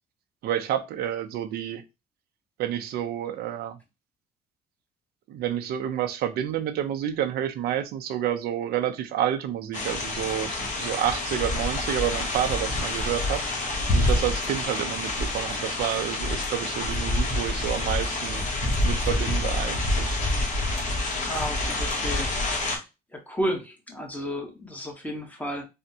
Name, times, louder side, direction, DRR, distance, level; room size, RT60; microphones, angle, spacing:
voice 1, 0.4-1.8 2.6-3.8 5.3-13.4 13.9-18.5 18.8-20.2, right 10 dB, 70° right, 0.5 m, -29 dB
sound 1, 9.7-22.8, left 2 dB, 45° left, 1.0 m, -27 dB
voice 2, 21.2-22.8 23.1-25.7, equal, 10° left, 0.9 m, -33 dB
3.4 x 2.1 x 2.7 m
cardioid pair, 110°, 17 cm